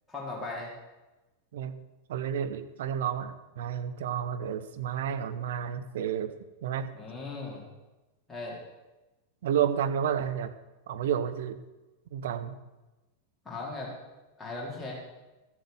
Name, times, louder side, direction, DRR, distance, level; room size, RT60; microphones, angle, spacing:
voice 1, 0.1-0.7 7.0-7.6 8.3-8.6 13.5-13.9 14.4-14.9, left 3 dB, 10° left, -4 dB, 3.6 m, -37 dB
voice 2, 2.1-6.3 6.6-6.9 9.4-10.5 10.9-11.6 12.1-12.6, right 9 dB, 55° right, 9 dB, 0.9 m, -31 dB
13.5 x 7.7 x 7.0 m, 1.1 s
figure-of-eight pair, 90°, 0 cm